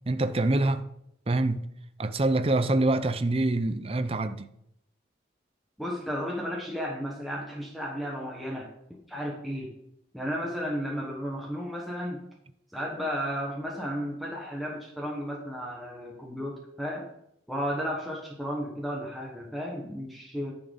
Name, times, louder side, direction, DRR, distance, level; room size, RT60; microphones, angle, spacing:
voice 1, 0.1-0.9 1.3-1.7 2.0-4.5, right 2 dB, 35° right, 0.6 m, -25 dB
voice 2, 5.8-8.7 9.1-9.7 10.1-12.2 12.7-17.1 17.5-20.5, equal, ahead, 1.1 m, -33 dB
10.5 x 6.3 x 5.2 m
head